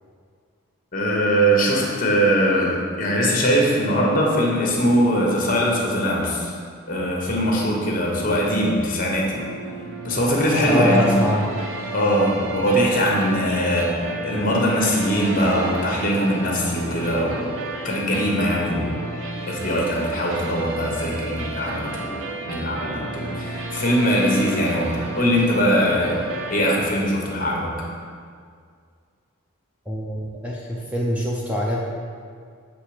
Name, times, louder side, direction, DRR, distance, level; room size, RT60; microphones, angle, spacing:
voice 1, 0.9-6.5 6.9-9.4 10.0-11.2 11.9-13.9 14.2-17.5 17.8-18.9 19.5-26.2 26.5-27.7, equal, 40° left, -2 dB, 1.0 m, -21 dB
sound 1, 9.4-26.9, right 2 dB, 70° right, 0.5 m, -32 dB
voice 2, 10.7-11.5 29.9-31.8, equal, 5° right, -4 dB, 0.5 m, -23 dB
7.5 x 3.4 x 4.8 m, 2.1 s
head